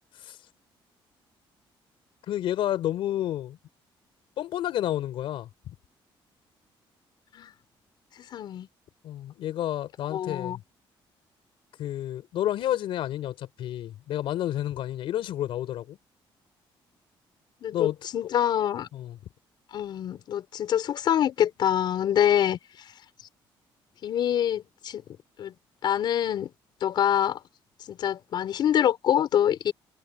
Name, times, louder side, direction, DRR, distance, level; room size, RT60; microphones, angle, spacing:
voice 1, 2.3-3.6 4.4-5.5 9.0-10.6 11.8-16.0 17.7-18.0 18.9-19.2, left 12 dB, 70° left, 4.3 m, -30 dB
voice 2, 8.1-8.7 10.1-10.6 17.6-18.9 19.7-22.9 24.0-25.0 25.4-25.5 25.8-26.5 26.8-27.4 27.9-29.7, left 10 dB, 50° left, 5.9 m, -25 dB
cardioid pair, 180°, 9 cm